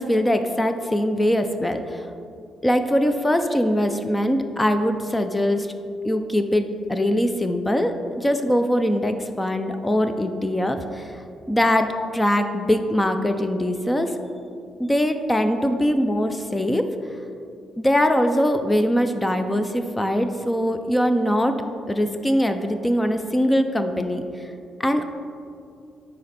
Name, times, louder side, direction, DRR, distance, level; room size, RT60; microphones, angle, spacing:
voice 1, 0.0-2.0 2.6-5.7 6.0-11.2 11.5-14.1 14.8-16.9 17.8-24.2 24.8-25.1, equal, 10° left, 7 dB, 0.4 m, -22 dB
9.4 x 4.3 x 4.1 m, 2.5 s
cardioid pair, 90°, 0 cm